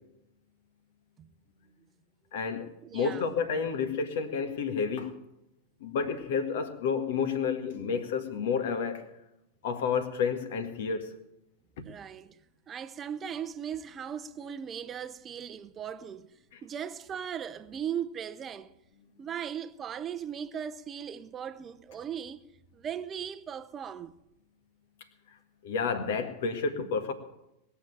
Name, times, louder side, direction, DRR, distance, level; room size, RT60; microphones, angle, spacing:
voice 1, 2.3-5.1 5.8-9.0 9.6-11.1 25.6-27.1, left 5 dB, 55° left, 1.7 m, -30 dB
voice 2, 2.8-3.3 11.8-12.4 12.7-16.3 16.6-18.7 19.2-22.5 22.7-24.1, right 8 dB, 25° right, 0.8 m, -38 dB
20.0 x 7.3 x 8.9 m
figure-of-eight pair, 90°, 0 cm